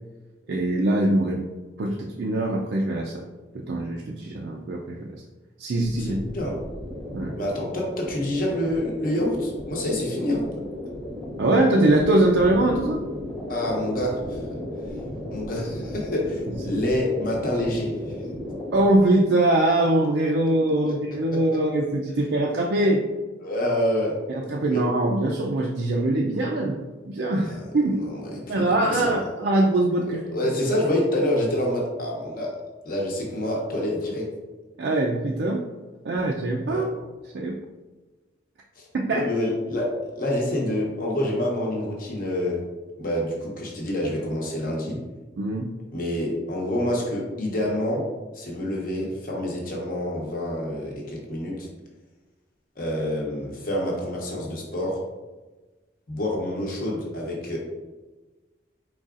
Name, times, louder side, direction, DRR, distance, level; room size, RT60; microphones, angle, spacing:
voice 1, 0.5-1.4 1.8-3.3 3.5-5.2 5.6-6.2 7.1-7.4 11.4-13.0 18.7-23.0 24.3-26.8 27.0-28.1 28.5-30.3 34.8-35.6 36.0-36.9 37.3-37.6 38.9-39.3 45.4-45.7, right 1 dB, 65° right, -1 dB, 0.4 m, -22 dB
sound 1, 5.8-19.0, left 1 dB, 5° left, 0.7 m, -35 dB
voice 2, 6.0-6.5 7.4-10.4 13.5-14.4 15.3-17.9 20.9-21.0 21.3-21.6 23.4-24.1 24.7-24.8 27.4-27.6 27.9-29.2 30.3-32.5 32.9-34.3 36.7-36.8 38.8-42.6 43.0-45.0 45.9-48.0 48.3-51.7 52.8-55.0 56.1-57.6, left 1 dB, 45° left, -2 dB, 0.9 m, -27 dB
4.6 x 4.0 x 2.4 m, 1.2 s
head